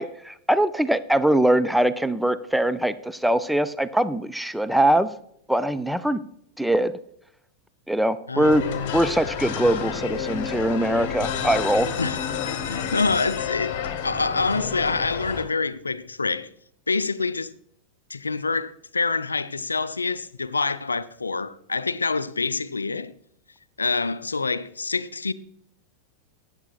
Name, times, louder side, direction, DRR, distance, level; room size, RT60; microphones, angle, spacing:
voice 1, 0.0-5.1 5.5-6.2 6.6-6.9 7.9-8.6 8.9-11.9, right 1 dB, ahead, 0.4 m, -22 dB
voice 2, 8.3-9.0 12.0-12.2 12.7-16.5 16.9-17.5 18.1-23.1 23.8-25.3, left 4 dB, 75° left, 0.4 m, -26 dB
sound 1, 8.4-15.4, left 7 dB, 45° left, 1.1 m, -30 dB
14.5 x 8.9 x 2.3 m
figure-of-eight pair, 90°, 0 cm